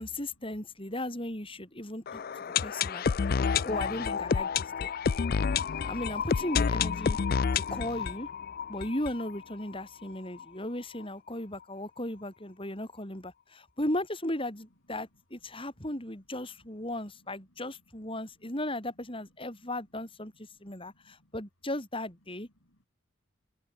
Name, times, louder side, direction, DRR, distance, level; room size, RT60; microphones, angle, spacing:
voice 1, 0.0-2.2 2.6-3.0 3.6-4.9 5.8-7.2 7.5-8.3 8.7-22.5, left 1 dB, 25° left, 4.8 m, -36 dB
voice 2, 1.5-3.5 15.5-15.7 16.5-16.6 16.9-17.6 18.1-18.5 19.6-19.7 20.6-21.3 22.6-22.9, equal, 75° left, 6.7 m, -67 dB
sound 1, 2.1-9.8 10.1-10.2 10.4-10.5 11.0-11.1, left 6 dB, 45° left, 0.4 m, -29 dB
head